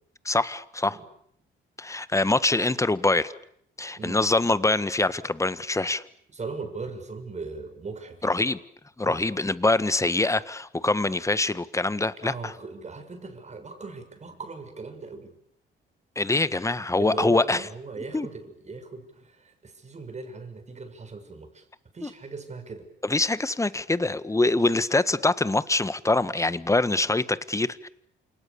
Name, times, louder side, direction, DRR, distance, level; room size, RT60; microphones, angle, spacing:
voice 1, 0.3-1.0 1.8-3.3 3.8-6.0 8.2-8.6 9.0-12.5 16.2-17.7 18.1-18.3 22.0-22.1 23.0-27.9, left 2 dB, 15° left, 1.6 m, -24 dB
voice 2, 6.3-8.4 9.0-9.3 12.2-15.4 17.0-21.6 21.9-22.9, right 4 dB, 35° right, 7.0 m, -38 dB
29.5 x 28.0 x 7.1 m
cardioid pair, 90°, 20 cm